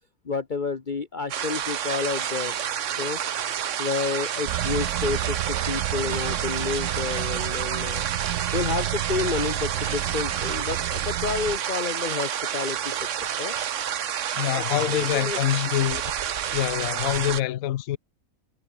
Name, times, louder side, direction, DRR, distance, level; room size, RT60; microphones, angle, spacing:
voice 1, 0.2-2.6 3.0-3.2 3.8-8.0 8.5-13.5 14.5-15.4, left 5 dB, 35° left, 1.4 m, -30 dB
sound 1, 1.3-17.4, right 9 dB, 60° right, 1.2 m, -29 dB
sound 2, 4.4-11.6, right 14 dB, 80° right, 1.1 m, -31 dB
voice 2, 14.4-16.0 16.5-18.0, left 13 dB, 75° left, 1.1 m, -25 dB
omnidirectional pair, 1.5 m